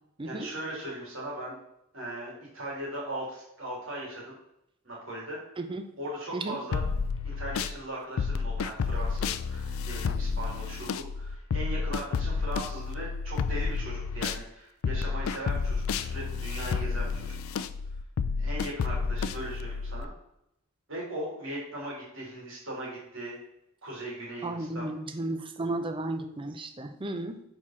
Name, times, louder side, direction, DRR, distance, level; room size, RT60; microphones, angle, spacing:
voice 1, 0.2-1.6 1.9-4.3 4.8-5.4 6.0-6.8 7.2-17.4 18.4-20.1 20.9-23.3 23.8-24.9, right 1 dB, 70° right, -4 dB, 2.7 m, -38 dB
sound 1, 6.7-7.8 8.2-14.4 14.8-20.0, left 5 dB, 85° left, 0.4 m, -30 dB
voice 2, 24.4-27.4, right 2 dB, 25° right, 7 dB, 0.6 m, -34 dB
4.7 x 4.5 x 5.6 m, 0.80 s
head